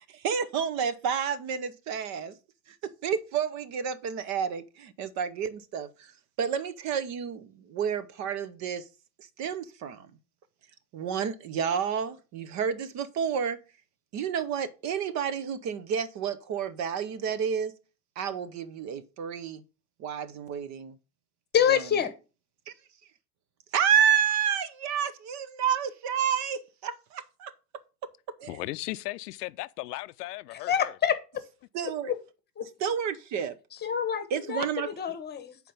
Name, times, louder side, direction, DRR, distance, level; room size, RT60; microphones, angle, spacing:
voice 1, 0.1-2.4 2.8-6.1 6.4-8.9 9.2-10.1 10.9-13.6 14.1-17.7 18.2-19.6 20.0-20.9 22.7-22.8 23.7-27.5 28.4-28.6 31.7-32.1 32.8-33.6 34.3-34.9, right 7 dB, 35° right, 0.7 m, -30 dB
voice 2, 21.5-22.1 30.7-31.2 32.1-32.2 32.6-32.7 33.7-35.6, left 8 dB, 20° left, 1.1 m, -27 dB
voice 3, 28.5-30.9, left 18 dB, 70° left, 0.6 m, -36 dB
7.1 x 4.5 x 5.3 m
hypercardioid pair, 115°, 49 cm